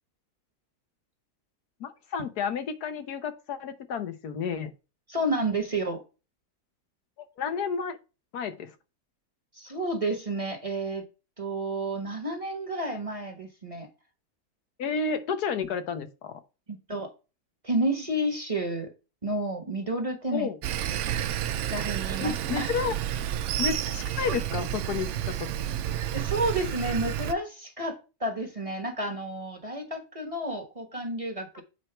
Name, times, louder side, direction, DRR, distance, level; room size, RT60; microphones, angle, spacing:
voice 1, 1.8-4.7 7.4-8.0 8.3-8.7 14.8-16.4 20.3-20.6 22.2-23.0 23.6-25.5, left 6 dB, 80° left, 1.5 m, -31 dB
voice 2, 5.1-6.0 9.5-11.1 11.4-13.9 16.7-17.1 17.6-18.9 19.2-20.5 20.8-20.9 21.7-22.7 26.1-31.6, right 1 dB, 25° right, 1.4 m, -30 dB
Sawing, 20.6-27.3, right 11 dB, 65° right, 0.7 m, -30 dB
8.1 x 4.6 x 4.4 m
omnidirectional pair, 1.7 m